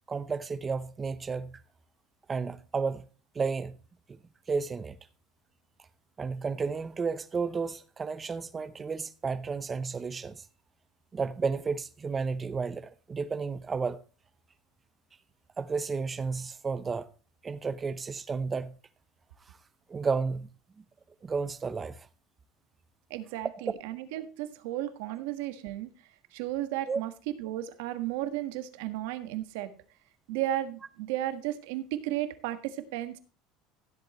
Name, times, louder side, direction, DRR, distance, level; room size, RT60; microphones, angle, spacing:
voice 1, 0.1-1.6 2.3-3.0 3.3-3.8 4.1-4.2 4.5-5.0 6.2-10.5 11.1-14.0 15.6-17.1 17.4-18.7 19.5-19.6 19.9-20.5 21.2-22.1 26.9-27.0, right 5 dB, 20° right, 0.7 m, -32 dB
voice 2, 23.1-25.9 26.3-29.7 30.3-33.2, right 13 dB, 80° right, 1.5 m, -34 dB
15.5 x 7.9 x 3.1 m
cardioid pair, 160°, 0 cm